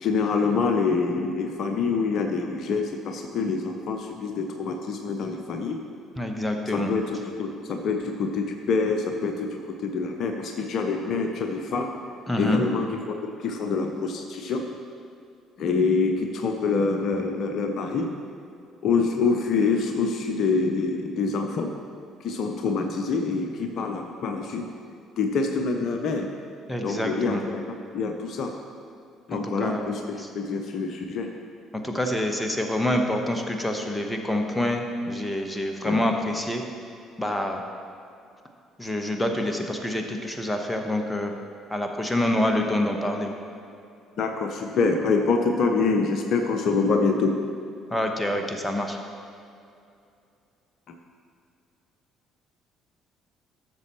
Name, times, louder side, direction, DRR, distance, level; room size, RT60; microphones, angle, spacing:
voice 1, 0.0-5.8 6.7-11.9 12.4-14.6 15.6-18.1 18.8-21.7 22.2-24.7 25.2-26.3 26.8-27.6 27.9-28.5 29.3-30.0 30.3-31.3 35.8-36.0 44.2-47.4, left 4 dB, 50° left, 4 dB, 0.7 m, -26 dB
voice 2, 6.2-6.9 12.3-12.6 26.7-27.4 29.3-30.3 31.7-36.6 37.2-37.6 38.8-41.4 41.7-43.4 47.9-49.0, left 1 dB, 5° left, 3 dB, 1.1 m, -27 dB
14.5 x 6.8 x 3.1 m, 2.5 s
figure-of-eight pair, 50°, 0 cm